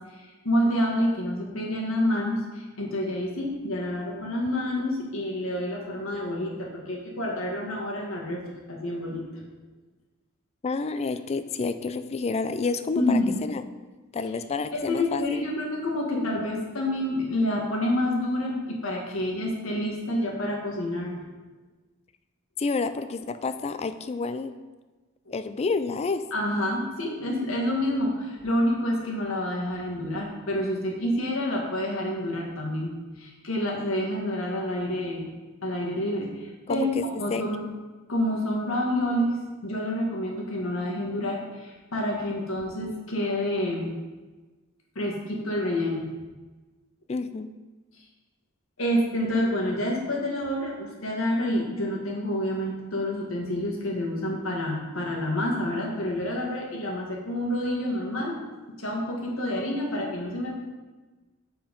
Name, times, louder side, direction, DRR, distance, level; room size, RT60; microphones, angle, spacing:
voice 1, 0.1-8.4 8.7-9.4 12.9-13.4 14.7-21.2 26.3-35.3 35.6-37.6 38.1-44.0 44.9-46.1 48.8-58.4 58.8-60.5, left 1 dB, 80° left, -1 dB, 1.7 m, -28 dB
voice 2, 10.6-13.6 14.1-15.5 22.6-24.6 25.3-26.2 36.7-37.4 47.1-47.5, left 4 dB, 30° left, 11 dB, 0.3 m, -29 dB
7.6 x 4.5 x 5.2 m, 1.2 s
head